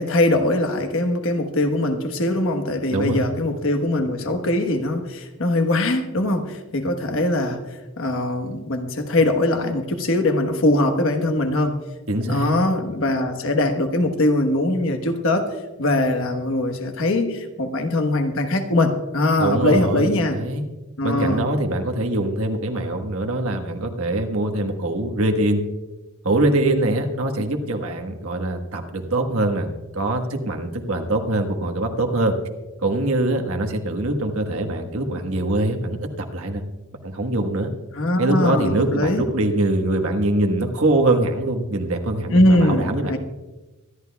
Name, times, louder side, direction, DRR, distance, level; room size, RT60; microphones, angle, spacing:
voice 1, 0.0-7.6 8.0-11.8 12.3-20.4 21.0-21.4 38.0-39.2 42.3-43.2, left 1 dB, 65° left, 6 dB, 1.2 m, -21 dB
voice 2, 2.9-3.2 12.1-12.5 19.4-20.6 21.0-25.6 26.2-29.7 29.9-32.3 32.8-36.6 37.0-37.7 38.2-43.2, right 1 dB, 70° right, 4 dB, 1.4 m, -23 dB
24.5 x 11.5 x 2.3 m, 1.1 s
head